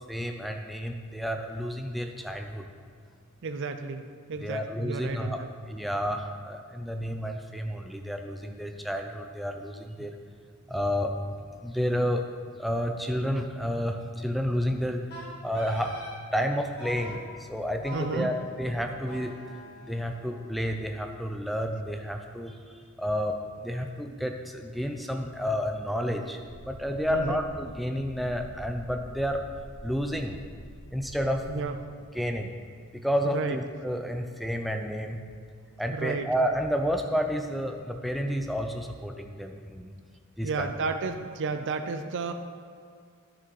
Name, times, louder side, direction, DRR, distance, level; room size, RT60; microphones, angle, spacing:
voice 1, 0.1-2.7 4.4-10.2 10.7-12.2 12.6-15.0 15.4-16.0 16.3-19.3 19.9-26.4 26.7-29.4 29.8-30.4 30.9-31.6 32.1-32.5 32.9-35.2 35.8-39.9 40.4-40.7, equal, ahead, 4 dB, 0.5 m, -30 dB
voice 2, 3.4-5.5 17.9-18.3 27.1-27.4 31.5-31.7 33.3-33.6 35.9-36.3 40.4-42.3, right 4 dB, 55° right, 7 dB, 0.5 m, -32 dB
Wind instrument woodwind instrument, 15.1-16.2 16.8-17.2 17.8-20.8, left 1 dB, 45° left, 2.3 m, -44 dB
sound 1, 26.4-31.6, equal, 75° left, 1.1 m, -46 dB
10.0 x 6.1 x 4.8 m, 2.2 s
head